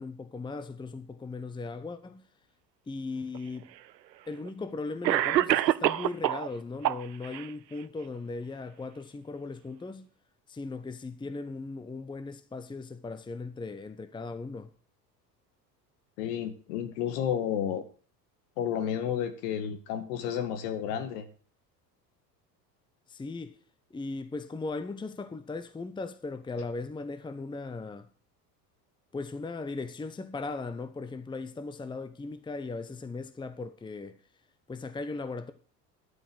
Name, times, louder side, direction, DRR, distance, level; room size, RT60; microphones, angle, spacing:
voice 1, 0.0-2.2 2.9-3.7 4.3-10.1 10.5-14.7 23.1-23.6 23.9-28.1 29.1-34.2 34.7-35.5, left 3 dB, 10° left, 0.9 m, -38 dB
Cough, 3.3-3.4 4.4-4.5 5.0-6.5 6.8-7.5, right 13 dB, 85° right, 0.6 m, -25 dB
voice 2, 16.2-17.8 18.6-21.3, left 9 dB, 65° left, 2.3 m, -31 dB
11.0 x 8.9 x 6.3 m
figure-of-eight pair, 75°, 50 cm